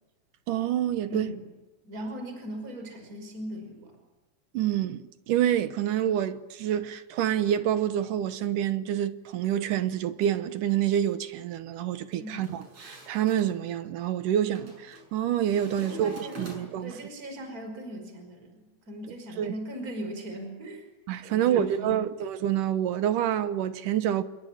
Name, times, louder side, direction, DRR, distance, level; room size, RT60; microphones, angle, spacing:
voice 1, 0.5-1.3 4.5-16.1 16.4-17.0 19.4-19.5 21.1-24.2, right 10 dB, 70° right, 2.5 m, -27 dB
voice 2, 1.1-1.5 1.8-3.9 12.2-12.6 15.8-16.5 16.8-20.9 21.3-22.0, right 1 dB, 20° right, 5.7 m, -39 dB
sound 1, 12.3-13.5 14.6-15.1 15.4-16.9, right 1 dB, 45° right, 8.0 m, -45 dB
28.0 x 22.5 x 9.1 m
omnidirectional pair, 4.3 m